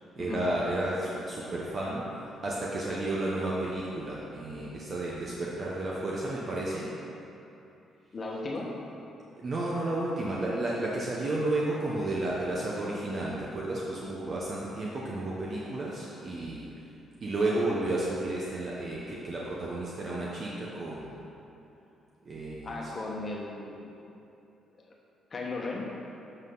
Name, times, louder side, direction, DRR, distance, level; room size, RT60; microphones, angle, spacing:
voice 1, 0.2-2.0 2.4-6.9 9.4-16.7 17.2-21.1 22.2-22.8, right 2 dB, 45° right, -5 dB, 0.9 m, -32 dB
voice 2, 8.1-8.7 22.6-23.9 25.3-25.9, left 2 dB, 40° left, -2 dB, 1.2 m, -36 dB
8.0 x 5.6 x 3.9 m, 2.9 s
cardioid pair, 90°, 0 cm